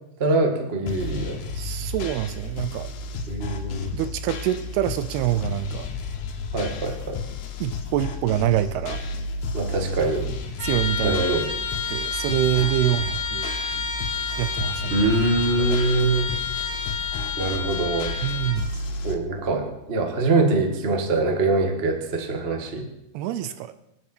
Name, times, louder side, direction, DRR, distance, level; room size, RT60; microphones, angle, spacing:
voice 1, 0.2-1.4 3.3-3.9 6.5-7.2 9.5-10.3 11.0-11.4 14.9-16.3 17.4-18.1 19.0-22.9, right 3 dB, 50° right, 3 dB, 0.6 m, -23 dB
sound 1, 0.9-19.2, left 3 dB, 75° left, 3.3 m, -32 dB
voice 2, 1.5-2.9 3.9-5.9 7.6-9.2 10.6-11.3 11.9-13.6 14.4-15.0 15.6-16.1 18.2-18.7 23.1-23.7, right 13 dB, 80° right, 12 dB, 2.5 m, -26 dB
Trumpet, 10.6-18.7, left 5 dB, 40° left, 3.4 m, -30 dB
26.5 x 9.3 x 4.5 m, 0.87 s
omnidirectional pair, 4.8 m